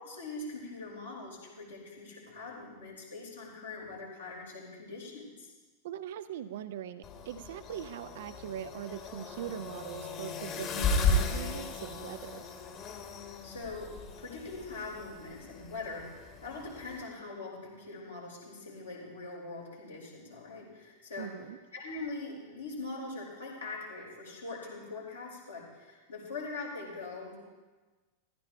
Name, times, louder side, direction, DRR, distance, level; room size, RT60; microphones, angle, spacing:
voice 1, 0.0-5.5 13.2-13.9 14.2-21.3 21.7-27.4, left 3 dB, 75° left, -5 dB, 4.3 m, -42 dB
voice 2, 5.8-12.4 21.2-21.6, right 10 dB, 55° right, 12 dB, 0.4 m, -41 dB
sound 1, 7.0-17.0, left 3 dB, 35° left, 1.7 m, -35 dB
15.0 x 13.0 x 3.3 m, 1.3 s
figure-of-eight pair, 90°, 0 cm